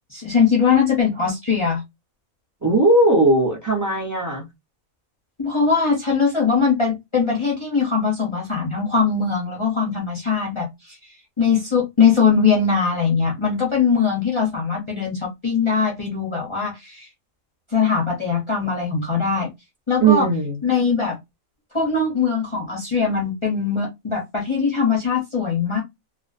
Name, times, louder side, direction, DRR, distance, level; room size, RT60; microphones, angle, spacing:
voice 1, 0.1-1.8 5.4-10.7 11.4-17.1 17.7-19.5 19.9-20.3 20.6-21.2 21.7-25.8, left 5 dB, 40° left, 0.4 m, -21 dB
voice 2, 2.6-4.4 20.0-20.6, right 2 dB, 30° right, 0.3 m, -18 dB
2.4 x 2.1 x 2.5 m
omnidirectional pair, 1.5 m